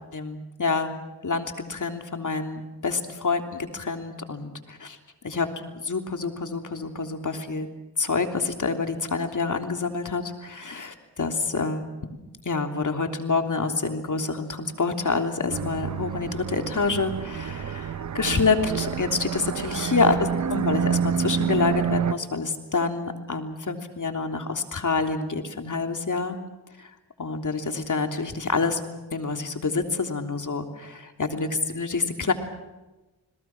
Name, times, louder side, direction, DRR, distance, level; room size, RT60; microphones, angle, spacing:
voice 1, 0.1-0.9 1.2-5.0 5.2-7.7 8.0-12.2 12.4-26.4 26.8-26.9 27.2-28.8 29.1-32.3, left 4 dB, 50° left, 5 dB, 3.3 m, -27 dB
sound 1, 15.5-22.1, right 7 dB, 45° right, 0.7 m, -28 dB
30.0 x 22.0 x 6.1 m, 1.1 s
cardioid pair, 50°, 40 cm